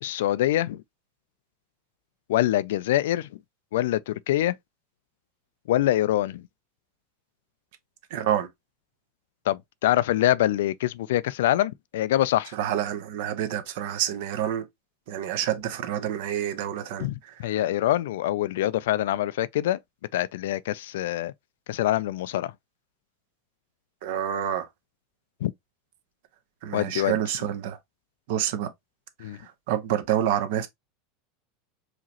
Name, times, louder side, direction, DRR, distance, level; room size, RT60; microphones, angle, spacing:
voice 1, 0.0-0.8 2.3-3.3 3.7-4.6 5.7-6.4 9.5-12.5 17.0-19.8 20.1-21.3 21.7-22.5 25.4-25.5 26.7-27.2 29.2-29.4, left 13 dB, 85° left, 0.3 m, -25 dB
voice 2, 8.1-8.5 12.5-14.6 15.1-17.1 24.0-24.7 26.6-27.8 28.3-28.7 29.4-30.7, right 10 dB, 70° right, 0.9 m, -28 dB
4.9 x 3.0 x 2.8 m
supercardioid pair, 130°, 0 cm